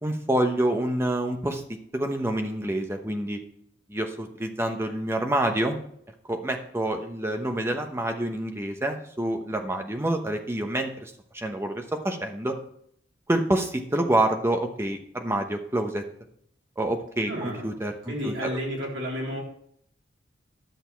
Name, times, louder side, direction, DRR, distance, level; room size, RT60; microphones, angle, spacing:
voice 1, 0.0-1.6 1.9-3.4 3.9-5.8 6.3-12.6 13.3-16.0 16.8-18.5, right 1 dB, 15° right, 4 dB, 0.9 m, -27 dB
voice 2, 17.2-17.7 18.1-19.4, equal, 75° right, -3 dB, 3.3 m, -31 dB
10.5 x 6.6 x 4.5 m, 0.67 s
head